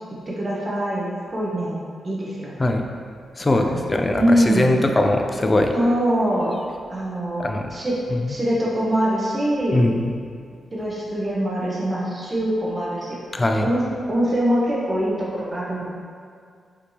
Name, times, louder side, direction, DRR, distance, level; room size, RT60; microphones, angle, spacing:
voice 1, 0.3-2.5 3.5-3.8 4.1-4.7 5.7-6.5 6.9-8.0 8.3-9.9 10.7-13.2 13.6-15.9, equal, 30° right, -6 dB, 1.0 m, -23 dB
voice 2, 3.4-5.7 7.4-7.7 8.2-8.3 9.7-10.1 13.3-13.7, left 1 dB, 25° left, 4 dB, 0.3 m, -21 dB
5.0 x 3.2 x 2.9 m, 2.2 s
wide cardioid pair, 115°, 0 cm